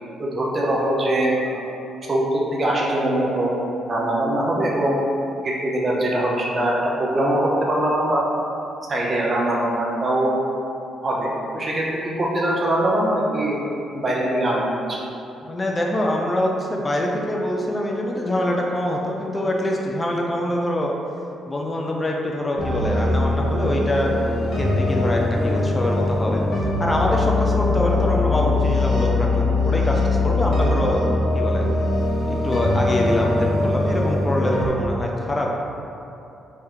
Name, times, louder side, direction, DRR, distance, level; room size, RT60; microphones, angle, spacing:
voice 1, 0.2-1.6 2.0-3.5 3.9-5.0 5.4-8.2 8.9-10.4 11.0-13.6 13.9-14.6 14.9-15.0, right 1 dB, 35° right, -4 dB, 0.6 m, -22 dB
voice 2, 15.4-21.0 21.5-24.1 24.5-26.4 26.8-31.0 31.3-31.7 32.3-35.5, left 1 dB, 20° left, -1 dB, 0.4 m, -24 dB
sound 1, 22.6-34.7, left 2 dB, 60° left, 1.0 m, -22 dB
3.5 x 2.7 x 3.5 m, 2.8 s
cardioid pair, 90°, 0 cm